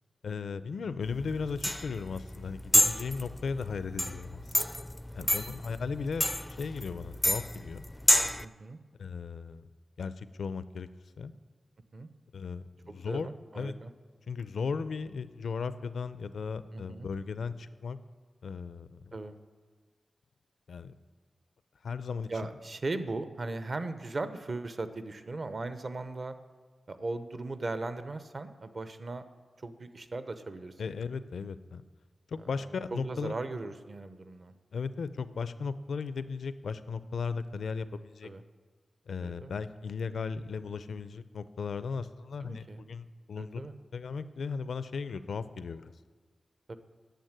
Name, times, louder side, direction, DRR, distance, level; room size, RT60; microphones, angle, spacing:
voice 1, 0.2-4.9 5.1-6.3 6.6-7.9 9.0-9.7 10.0-10.9 11.2-11.3 12.3-13.3 13.6-13.7 14.3-18.0 18.4-19.1 20.7-20.9 21.8-22.3 30.8-31.8 32.3-33.3 34.7-38.3 39.1-43.6 43.9-45.9, left 5 dB, 85° left, 14 dB, 0.5 m, -36 dB
sound 1, 1.1-8.4, left 1 dB, 10° left, 0.4 m, -29 dB
voice 2, 5.2-5.5 8.4-8.8 11.9-12.1 12.9-13.9 16.7-17.1 19.1-19.4 22.3-26.3 26.9-29.2 29.6-30.8 32.9-34.5 38.2-38.4 39.2-39.5 42.4-42.8 43.4-43.7 46.7-46.8, right 2 dB, 50° right, 11 dB, 0.8 m, -38 dB
9.3 x 7.2 x 9.0 m, 1.4 s
wide cardioid pair, 75°, 0 cm